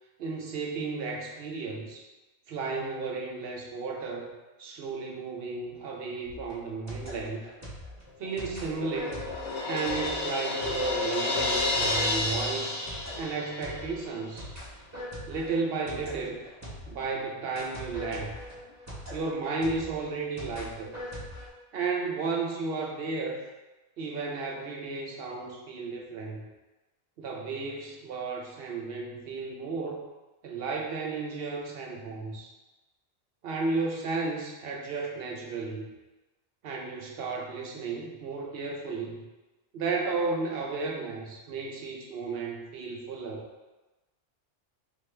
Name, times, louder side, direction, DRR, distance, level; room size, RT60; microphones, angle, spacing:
voice 1, 0.2-2.1 2.5-4.3 4.6-7.4 8.2-9.2 9.6-12.8 13.2-14.5 15.3-16.4 16.9-18.3 19.1-20.9 21.7-23.4 24.0-26.4 27.2-30.1 30.4-32.5 33.4-35.9 36.6-39.2 39.7-43.5, right 4 dB, 60° right, -1 dB, 0.7 m, -33 dB
sound 1, 6.2-17.1 17.6-21.5, equal, 15° right, 0.6 m, -42 dB
Crash cymbal, 8.2-13.9, left 2 dB, 75° left, 1.0 m, -31 dB
3.5 x 2.5 x 3.2 m, 1.1 s
omnidirectional pair, 1.2 m